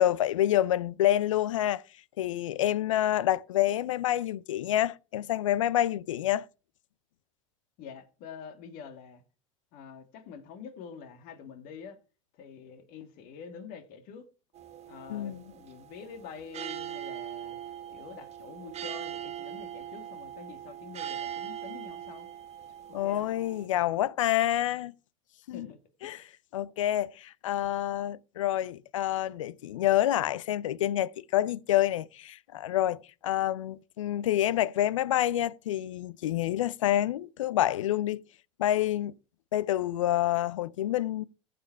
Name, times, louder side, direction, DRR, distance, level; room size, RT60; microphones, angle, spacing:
voice 1, 0.0-1.8 2.2-6.4 15.1-15.4 22.9-24.9 25.5-25.7 26.0-26.2 26.5-38.2 38.6-39.1 39.5-41.2, left 13 dB, 85° left, 0.6 m, -27 dB
voice 2, 7.8-9.2 9.7-12.0 12.3-14.3 14.9-17.6 17.9-22.3 23.0-23.3 25.5-26.3, left 6 dB, 60° left, 2.1 m, -46 dB
sound 1, 14.5-23.7, right 10 dB, 45° right, 1.8 m, -41 dB
14.5 x 6.9 x 4.5 m
hypercardioid pair, 85°, 16 cm